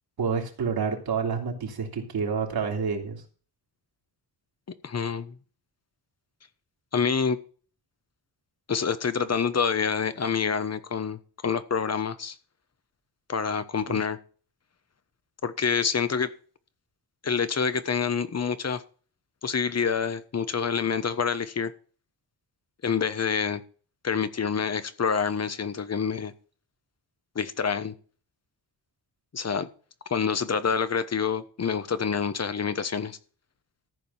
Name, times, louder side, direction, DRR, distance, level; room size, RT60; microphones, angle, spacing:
voice 1, 0.2-3.2 13.9-14.0, right 5 dB, 70° right, 1 dB, 3.2 m, -28 dB
voice 2, 4.8-5.4 6.9-7.4 8.7-12.3 13.3-14.2 15.4-16.3 17.2-18.8 19.4-21.7 22.8-23.6 24.0-26.3 27.3-27.9 29.3-29.7 30.1-33.2, left 6 dB, 40° left, 12 dB, 1.2 m, -27 dB
14.0 x 5.2 x 7.5 m, 0.41 s
cardioid pair, 90°, 39 cm